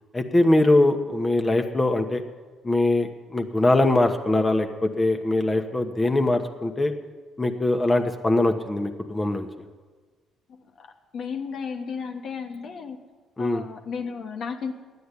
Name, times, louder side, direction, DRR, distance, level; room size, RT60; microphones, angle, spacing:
voice 1, 0.1-2.2 2.6-6.9 7.4-9.5 13.4-13.6, left 2 dB, 25° left, 5 dB, 1.2 m, -22 dB
voice 2, 11.1-13.0 13.4-14.7, left 6 dB, 60° left, 4 dB, 1.3 m, -33 dB
11.5 x 9.3 x 8.3 m, 1.4 s
hypercardioid pair, 55°, 0 cm